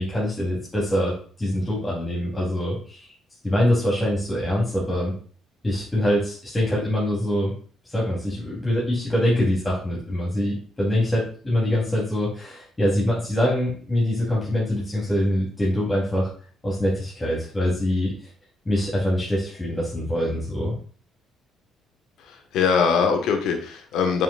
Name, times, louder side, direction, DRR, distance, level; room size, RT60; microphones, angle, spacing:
voice 1, 0.0-3.1 3.4-5.2 5.6-7.5 7.9-16.3 16.6-18.1 18.6-20.7, left 1 dB, 20° left, -6 dB, 2.9 m, -24 dB
voice 2, 22.2-24.2, left 6 dB, 75° left, 5 dB, 1.1 m, -22 dB
7.0 x 5.8 x 2.3 m, 0.42 s
hypercardioid pair, 60°, 0 cm